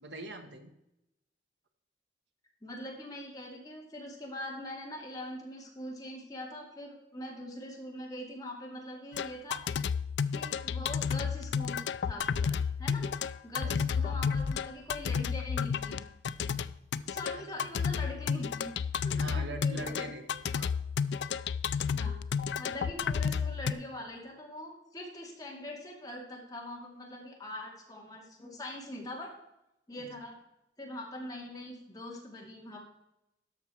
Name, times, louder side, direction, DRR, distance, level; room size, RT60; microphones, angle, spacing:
voice 1, 0.0-0.7 13.6-14.3 17.3-17.4 19.2-20.7 30.0-30.1, right 2 dB, 85° right, 5 dB, 1.5 m, -43 dB
voice 2, 2.6-9.6 10.3-13.1 13.4-16.0 17.1-20.0 21.9-22.2 22.6-29.3 29.9-30.4 30.8-32.8, left 1 dB, 20° left, -1 dB, 2.4 m, -43 dB
sound 1, 9.1-23.7, left 6 dB, 80° left, 0.4 m, -32 dB
13.0 x 5.7 x 4.5 m, 0.87 s
head